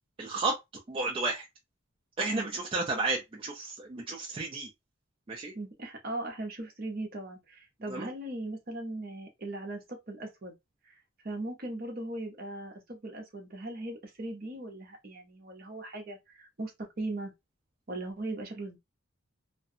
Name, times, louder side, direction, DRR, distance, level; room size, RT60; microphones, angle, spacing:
voice 1, 0.2-0.6 0.9-1.5 2.2-4.7 5.3-5.5 7.9-8.1, right 3 dB, 25° right, 0.3 m, -32 dB
voice 2, 2.2-2.5 5.5-10.5 10.8-10.9 11.2-17.3 17.9-18.8, right 2 dB, 45° right, 0.7 m, -39 dB
2.5 x 2.2 x 2.6 m
head